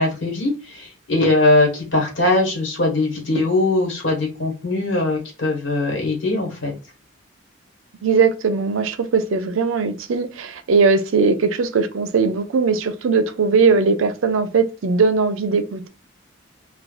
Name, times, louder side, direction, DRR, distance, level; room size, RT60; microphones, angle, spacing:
voice 1, 0.0-6.7, left 2 dB, 65° left, 1.2 m, -20 dB
voice 2, 8.0-15.9, right 4 dB, 80° right, 0.5 m, -19 dB
2.5 x 2.2 x 2.3 m
head